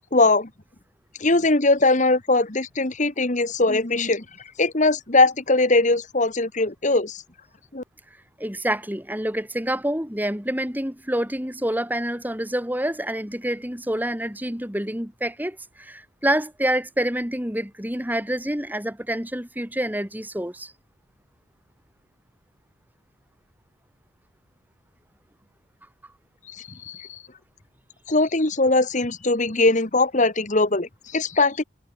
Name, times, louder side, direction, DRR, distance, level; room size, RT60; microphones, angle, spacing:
voice 1, 0.1-0.5 1.2-7.2 7.7-7.8 26.5-27.2 28.1-31.6, left 2 dB, 35° left, 1.5 m, -21 dB
voice 2, 8.4-20.7, right 1 dB, 10° right, 2.5 m, -27 dB
head